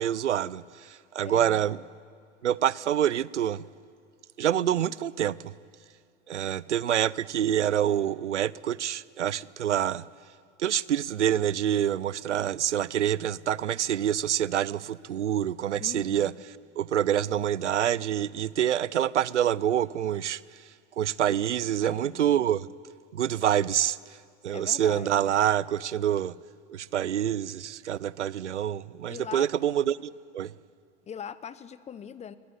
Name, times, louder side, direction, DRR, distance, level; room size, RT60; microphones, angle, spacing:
voice 1, 0.0-1.8 2.4-3.7 4.4-5.5 6.3-10.0 10.6-16.3 16.8-20.4 21.0-22.7 23.1-24.0 24.4-26.3 26.7-30.5, right 10 dB, 85° right, 0.6 m, -26 dB
voice 2, 1.2-1.7 15.8-16.4 21.8-22.6 24.5-25.4 29.1-29.5 31.1-32.3, left 8 dB, 20° left, 0.8 m, -41 dB
21.5 x 17.5 x 9.8 m
figure-of-eight pair, 90°, 34 cm